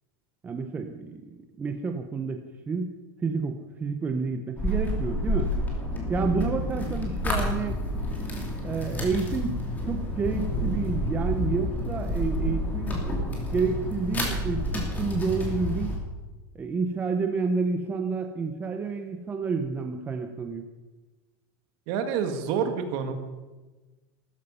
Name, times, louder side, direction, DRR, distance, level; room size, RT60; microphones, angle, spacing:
voice 1, 0.4-2.9 3.2-5.5 6.1-7.8 8.6-9.6 9.8-13.0 13.5-15.9 16.5-20.7, right 4 dB, 15° right, 5 dB, 0.7 m, -29 dB
sound 1, 4.6-16.0, left 1 dB, 15° left, 2.8 m, -29 dB
voice 2, 21.9-23.1, right 7 dB, 45° right, 7 dB, 1.8 m, -28 dB
15.0 x 13.5 x 5.6 m, 1.2 s
supercardioid pair, 170°, 12 cm